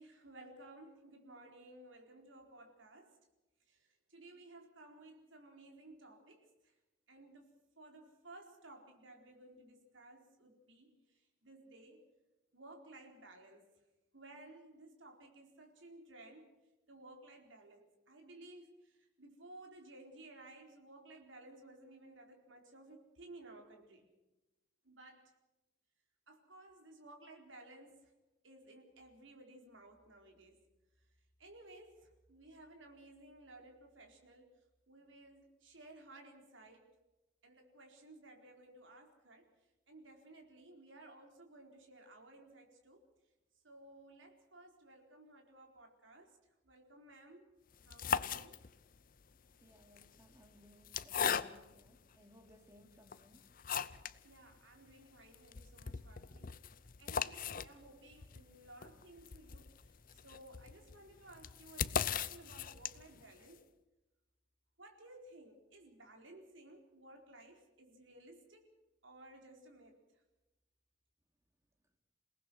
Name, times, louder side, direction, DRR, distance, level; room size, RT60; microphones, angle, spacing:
voice 1, 0.0-3.2 3.7-6.7 7.1-10.9 11.4-12.0 12.5-13.7 14.1-16.6 16.9-24.1 24.8-25.3 26.3-28.1 28.4-30.6 31.4-34.5 34.9-36.9 37.4-39.5 39.9-43.0 43.6-46.3 46.6-47.5 47.8-48.6 54.2-56.5 57.0-63.6 64.8-68.7 69.0-70.0, right 2 dB, 80° right, 2 dB, 4.4 m, -57 dB
sound 1, 47.7-49.0 49.8-51.9 52.5-52.6 53.1-54.2 54.5-54.6 54.9-55.0 55.3-63.2, left 7 dB, 45° left, 0.6 m, -39 dB
voice 2, 49.6-53.6 56.3-56.6, equal, 15° right, 4 dB, 2.8 m, -63 dB
28.0 x 18.5 x 6.3 m, 1.0 s
head